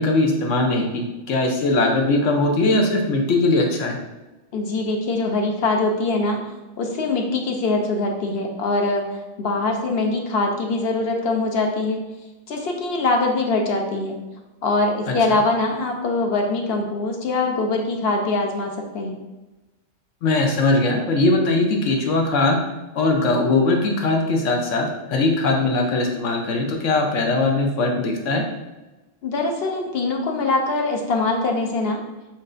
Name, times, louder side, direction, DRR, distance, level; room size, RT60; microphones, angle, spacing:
voice 1, 0.0-4.0 15.1-15.4 20.2-22.6 23.0-28.4, left 2 dB, 80° left, 2 dB, 1.1 m, -20 dB
voice 2, 4.5-6.4 6.8-9.0 9.4-12.0 12.5-14.2 14.6-19.1 29.2-32.0, left 3 dB, 60° left, 2 dB, 0.9 m, -23 dB
7.2 x 2.6 x 2.5 m, 1.1 s
omnidirectional pair, 1.3 m